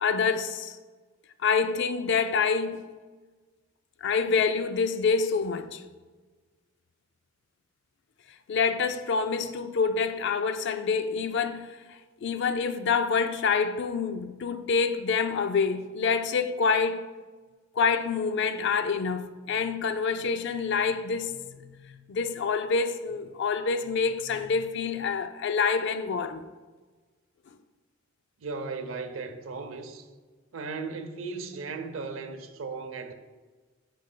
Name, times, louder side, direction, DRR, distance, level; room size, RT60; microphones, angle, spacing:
voice 1, 0.0-0.8 1.4-2.8 4.0-5.8 8.5-17.1 17.8-26.5, left 5 dB, 60° left, 0.4 m, -27 dB
voice 2, 28.4-30.1 30.5-33.1, right 4 dB, 80° right, 0.6 m, -36 dB
9.0 x 5.3 x 2.2 m
head